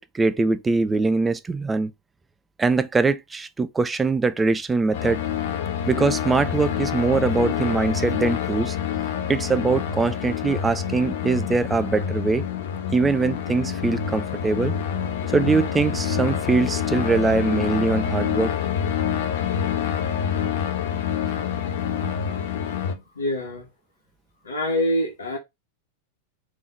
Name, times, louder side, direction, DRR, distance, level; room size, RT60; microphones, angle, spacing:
voice 1, 0.0-1.9 2.6-5.2 5.9-8.8 9.3-12.4 12.9-14.7 15.3-18.5, right 4 dB, 15° right, 0.3 m, -22 dB
sound 1, 4.9-22.9, left 8 dB, 55° left, 0.6 m, -27 dB
voice 2, 22.7-23.7 24.4-25.4, left 1 dB, 70° left, 1.1 m, -26 dB
3.6 x 3.2 x 2.4 m
figure-of-eight pair, 90°, 0 cm